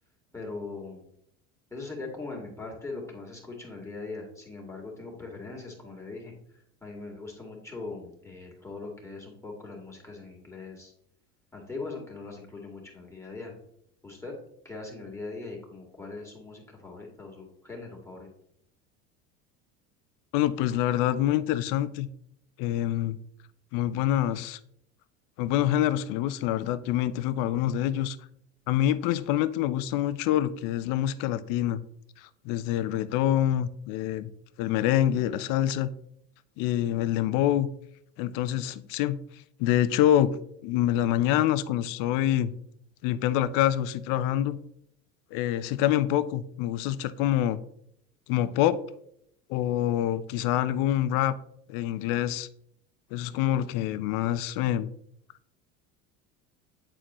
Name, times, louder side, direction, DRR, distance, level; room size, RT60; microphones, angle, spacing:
voice 1, 0.3-1.1 1.7-10.9 11.5-13.5 14.0-14.3 14.6-18.3, left 3 dB, 5° left, -2 dB, 2.1 m, -40 dB
voice 2, 20.3-22.1 22.6-23.2 23.7-24.6 25.4-28.2 28.7-31.8 32.2-34.3 34.6-35.9 36.6-37.7 38.2-39.2 39.6-40.3 40.6-42.5 43.0-44.6 45.3-47.6 48.3-48.8 49.5-51.3 51.7-52.5 53.1-54.9, left 12 dB, 60° left, 15 dB, 0.6 m, -26 dB
8.8 x 4.3 x 3.0 m, 0.72 s
supercardioid pair, 90°, 37 cm